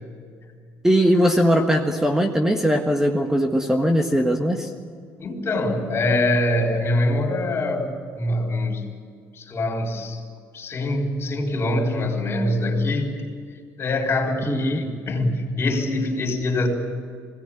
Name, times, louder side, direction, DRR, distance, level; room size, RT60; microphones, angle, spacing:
voice 1, 0.8-4.7 14.5-14.8, equal, 10° right, 3 dB, 1.6 m, -20 dB
voice 2, 5.2-8.8 9.3-10.2 10.5-13.1 13.8-16.7, left 1 dB, 40° left, 1 dB, 4.4 m, -24 dB
20.0 x 17.5 x 8.6 m, 2.1 s
cardioid pair, 105°, 6 cm